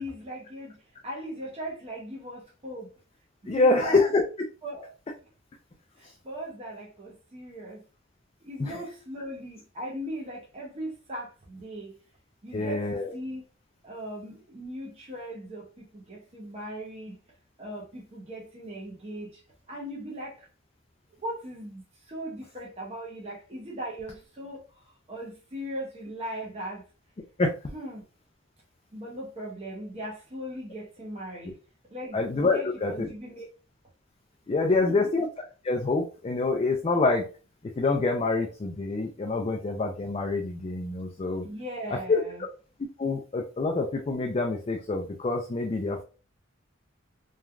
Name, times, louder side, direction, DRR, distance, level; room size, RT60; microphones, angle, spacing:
voice 1, 0.0-2.9 3.4-4.0 4.6-4.9 6.0-7.8 8.4-12.0 12.4-13.4 13.8-17.2 17.6-19.4 19.7-20.5 21.2-24.6 25.1-26.8 27.7-28.0 28.9-31.6 31.9-32.2 32.5-33.4 34.8-35.1 41.4-42.4, right 1 dB, 30° right, 0.6 m, -38 dB
voice 2, 3.5-4.2 8.6-8.8 12.5-13.1 27.4-27.5 32.1-33.1 34.5-35.3 35.6-37.2 37.8-41.5 42.1-42.2 43.0-46.0, left 3 dB, 30° left, 0.3 m, -26 dB
3.1 x 2.2 x 2.3 m
head